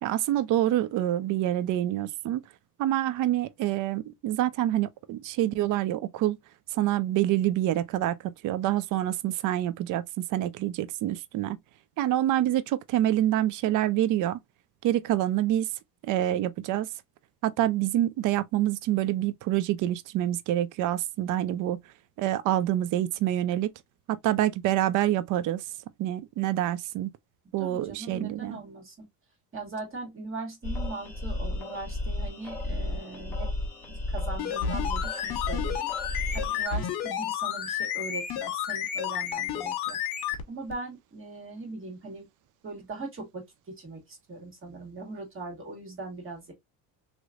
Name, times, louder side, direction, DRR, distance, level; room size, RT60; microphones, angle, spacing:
voice 1, 0.0-2.4 2.8-6.4 6.7-8.2 8.4-10.0 10.3-11.6 12.0-14.4 14.8-15.7 16.0-16.9 17.4-21.8 22.2-23.7 24.1-25.6 26.0-27.1 27.5-28.6, right 13 dB, 45° right, 0.5 m, -26 dB
voice 2, 27.6-29.1 29.5-33.5 33.9-35.9 36.3-40.0 40.5-42.3 42.6-46.5, right 3 dB, 30° right, 2.0 m, -40 dB
sound 1, 30.6-36.6, left 2 dB, 5° left, 1.3 m, -33 dB
sound 2, 34.3-40.4 40.7-40.8, left 9 dB, 60° left, 1.3 m, -31 dB
3.2 x 3.0 x 2.4 m
cardioid pair, 115°, 44 cm